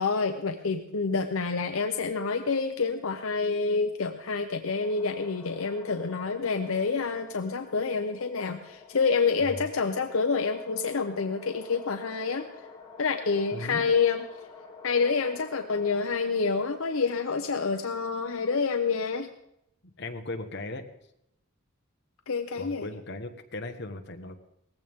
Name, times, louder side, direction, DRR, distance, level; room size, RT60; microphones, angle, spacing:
voice 1, 0.0-12.5 13.0-14.2 14.8-19.3 22.3-22.9, left 4 dB, 75° left, 6 dB, 0.8 m, -28 dB
sound 1, 4.6-17.0, left 4 dB, 20° left, 2.7 m, -48 dB
voice 2, 13.5-13.9 20.0-20.9 22.5-24.4, left 2 dB, 50° left, 5 dB, 1.3 m, -37 dB
18.5 x 15.0 x 3.6 m, 0.82 s
head